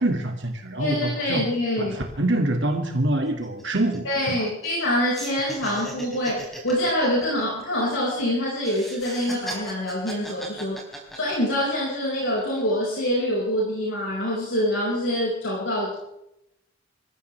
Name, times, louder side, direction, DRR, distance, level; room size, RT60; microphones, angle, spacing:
voice 1, 0.0-1.4 1.8-4.5, right 1 dB, 55° right, 2 dB, 2.2 m, -25 dB
voice 2, 0.8-2.0 4.0-10.8 11.1-16.0, left 1 dB, 60° left, -4 dB, 5.5 m, -25 dB
sound 1, 2.3-2.4 2.7-2.9 3.2-4.9 5.1-8.2 8.6-11.7 12.2-12.7, right 1 dB, ahead, 4.1 m, -38 dB
25.5 x 15.0 x 3.4 m, 0.84 s
head